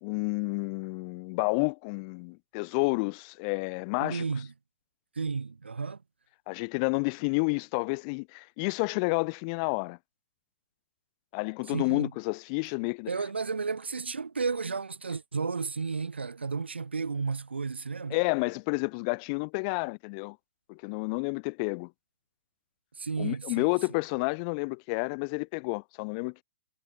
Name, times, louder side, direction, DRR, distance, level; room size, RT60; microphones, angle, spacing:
voice 1, 0.0-4.2 6.5-10.0 11.3-13.1 18.1-20.4 20.7-21.9 23.2-26.4, left 34 dB, 35° left, 1.1 m, -30 dB
voice 2, 4.0-4.5 5.2-6.0 11.7-12.1 13.1-18.2 23.0-23.7, right 4 dB, 85° right, 2.1 m, -32 dB
hypercardioid pair, 125°, 6 cm